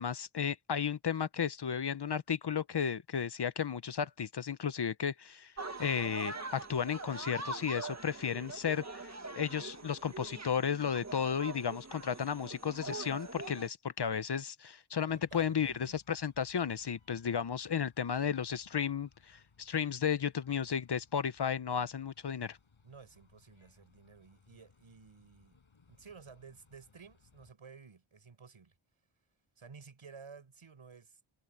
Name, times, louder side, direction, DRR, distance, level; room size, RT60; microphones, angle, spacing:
voice 1, 0.0-5.5 5.8-9.1 9.4-22.6, left 7 dB, 55° left, 0.9 m, -34 dB
sound 1, 5.6-13.7, right 3 dB, 35° right, 1.8 m, -43 dB
sound 2, 15.1-27.5, left 5 dB, 75° left, 6.6 m, -66 dB
voice 2, 15.1-16.0 22.8-25.6 25.9-28.7 29.6-31.2, right 5 dB, 80° right, 7.1 m, -54 dB
wide cardioid pair, 95°, 48 cm